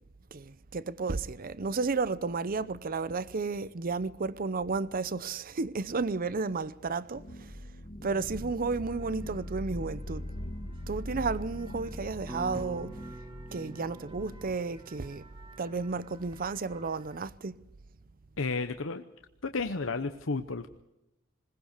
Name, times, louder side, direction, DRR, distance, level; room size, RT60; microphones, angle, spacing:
voice 1, 0.7-7.2 8.0-10.2 10.9-12.9 13.5-15.2 15.6-17.5, right 4 dB, 45° right, 0.6 m, -32 dB
sound 1, 7.1-14.6, left 1 dB, 40° left, 1.7 m, -41 dB
sound 2, 8.9-17.2, right 2 dB, 25° right, 2.3 m, -57 dB
sound 3, 12.3-16.6, right 1 dB, 5° right, 0.8 m, -48 dB
voice 2, 18.4-19.0 19.4-20.8, left 3 dB, 70° left, 0.9 m, -32 dB
21.0 x 20.0 x 6.6 m
head